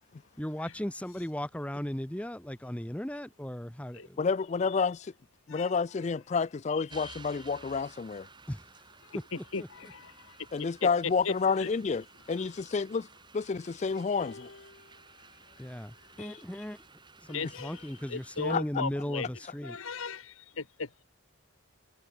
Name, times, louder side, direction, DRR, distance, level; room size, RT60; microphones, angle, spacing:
voice 1, 0.4-4.2 8.5-8.6 9.1-9.2 9.6-9.7 15.6-16.8 17.3-19.8, equal, 5° left, 0.7 m, -36 dB
voice 2, 4.2-5.1 5.5-8.3 10.5-13.0 13.3-14.5 16.2-16.4 18.5-18.6, left 5 dB, 30° left, 0.3 m, -29 dB
voice 3, 6.7-7.2 9.1-11.7 14.1-14.2 17.3-19.3 19.6-20.9, left 5 dB, 70° left, 1.2 m, -38 dB
sound 1, 6.9-18.6, right 4 dB, 20° right, 3.8 m, -55 dB
sound 2, 14.2-16.7 17.7-17.9, left 3 dB, 55° left, 1.3 m, -54 dB
head